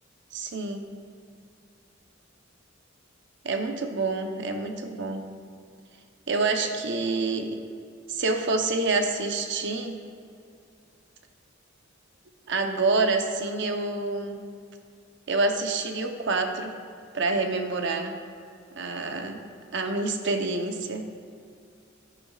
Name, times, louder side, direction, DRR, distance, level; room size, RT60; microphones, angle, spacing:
voice 1, 0.3-0.9 3.4-5.2 6.3-7.6 8.1-10.0 12.5-14.4 15.3-16.7 17.1-18.2 18.8-19.4 19.7-21.1, right 3 dB, 65° right, 5 dB, 0.9 m, -27 dB
14.0 x 10.5 x 2.4 m, 2.4 s
head